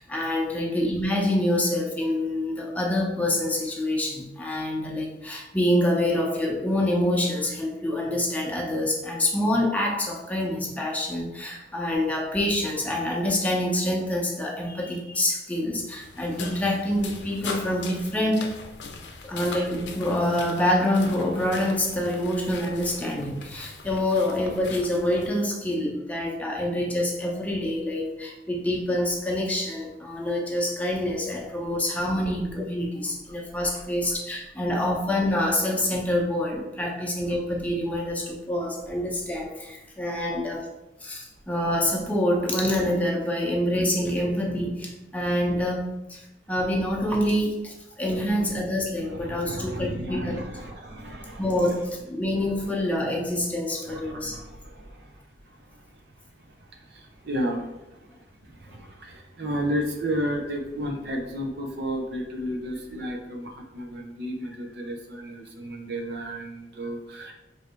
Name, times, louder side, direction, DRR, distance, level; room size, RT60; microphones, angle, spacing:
voice 1, 0.0-18.6 19.2-40.7 41.0-50.4 51.4-54.3, left 1 dB, 10° left, -2 dB, 0.7 m, -26 dB
sound 1, 16.0-25.3, left 4 dB, 80° left, 0.5 m, -40 dB
voice 2, 49.1-51.6 53.2-53.3 53.8-56.1 56.4-58.0 58.4-67.3, equal, 65° right, 2 dB, 0.6 m, -33 dB
3.3 x 2.7 x 4.3 m, 0.93 s
head